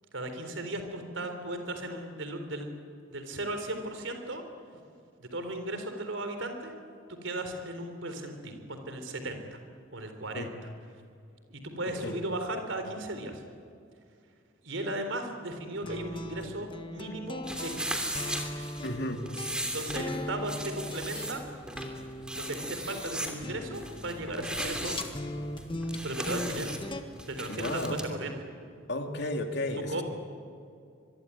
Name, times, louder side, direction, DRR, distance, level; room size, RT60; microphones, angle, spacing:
voice 1, 0.1-2.7 3.1-4.4 5.2-6.7 7.1-9.6 9.9-10.5 11.5-13.4 14.6-18.0 19.6-21.4 22.3-25.0 26.0-26.7 27.3-28.3 29.7-30.0, right 1 dB, 75° right, 7 dB, 3.9 m, -36 dB
voice 2, 11.9-12.2 18.8-19.2 27.5-28.0 28.9-30.0, left 1 dB, 60° left, 4 dB, 2.9 m, -33 dB
sound 1, 15.8-27.0, left 1 dB, 25° left, 1.5 m, -39 dB
sound 2, 17.4-28.1, right 1 dB, 5° right, 3.0 m, -38 dB
25.5 x 22.5 x 9.9 m, 2.4 s
head